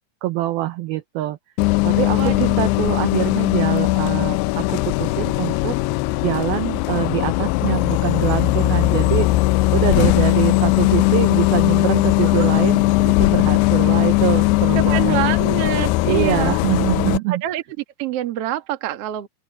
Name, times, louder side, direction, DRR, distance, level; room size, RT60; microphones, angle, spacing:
voice 1, 0.2-1.4 1.8-5.8 6.2-9.3 9.7-15.2 16.0-17.4, right 16 dB, 85° right, 2.1 m, -24 dB
Bus, 1.6-17.2, left 19 dB, 90° left, 2.4 m, -19 dB
voice 2, 2.1-2.6 12.3-12.5 14.7-16.6 17.3-17.6 18.0-19.3, right 13 dB, 70° right, 1.4 m, -26 dB
open air
omnidirectional pair, 5.3 m